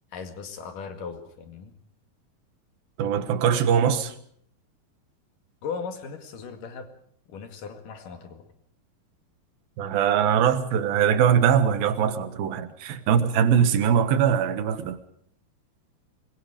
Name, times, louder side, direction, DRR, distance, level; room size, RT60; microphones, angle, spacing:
voice 1, 0.1-1.7 5.6-6.9 7.3-8.5, left 5 dB, 60° left, 3.5 m, -37 dB
voice 2, 3.0-4.1 9.8-15.0, right 8 dB, 70° right, 3.1 m, -22 dB
26.0 x 22.0 x 5.1 m
omnidirectional pair, 4.5 m